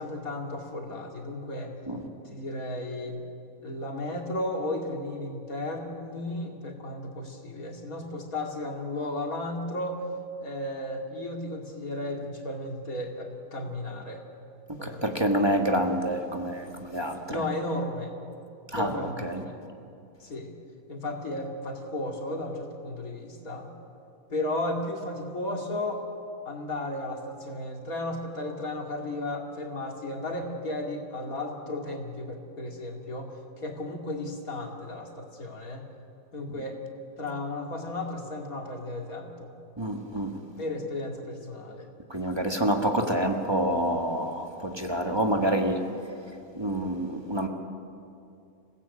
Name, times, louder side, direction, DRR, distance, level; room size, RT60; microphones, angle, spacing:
voice 1, 0.0-1.7 2.2-3.2 3.6-10.0 10.4-14.2 14.8-15.3 17.3-18.1 18.7-19.2 20.2-20.5 20.9-23.7 24.3-26.0 26.4-35.8 36.3-36.8 37.2-39.5 40.6-41.9, left 1 dB, 90° left, 1 dB, 3.1 m, -34 dB
voice 2, 14.8-17.4 18.7-19.4 39.8-40.3 42.1-45.8 46.5-47.5, right 1 dB, 20° right, 3 dB, 1.7 m, -27 dB
27.0 x 17.0 x 8.5 m, 2.5 s
omnidirectional pair, 1.5 m